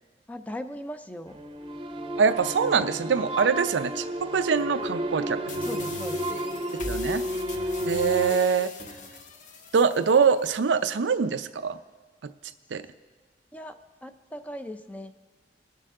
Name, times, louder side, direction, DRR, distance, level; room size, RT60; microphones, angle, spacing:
voice 1, 0.3-1.4 3.5-3.7 5.6-6.3 13.5-13.8 14.0-15.1, left 1 dB, 10° left, 9 dB, 0.4 m, -38 dB
sound 1, 1.3-8.3, equal, 30° right, 0.7 m, -31 dB
voice 2, 2.2-4.0 4.3-5.4 6.9-7.2 7.9-8.7 9.7-11.8 12.7-12.8, right 6 dB, 85° right, 11 dB, 0.5 m, -23 dB
sound 2, 5.5-10.5, left 3 dB, 45° left, 0.8 m, -40 dB
19.5 x 6.7 x 3.7 m, 1.5 s
head